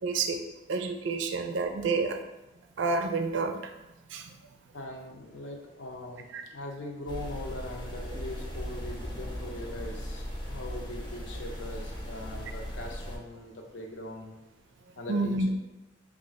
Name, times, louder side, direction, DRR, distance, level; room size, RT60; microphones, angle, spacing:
voice 1, 0.0-0.4 0.7-2.2 2.8-3.7 4.1-4.3 6.3-6.4 15.1-15.5, right 3 dB, 75° right, 6 dB, 0.4 m, -29 dB
voice 2, 4.7-14.3 15.0-15.5, left 1 dB, 70° left, 1 dB, 0.6 m, -41 dB
sound 1, 7.1-13.2, equal, 25° left, 0.6 m, -38 dB
3.2 x 2.4 x 4.0 m, 1.0 s
head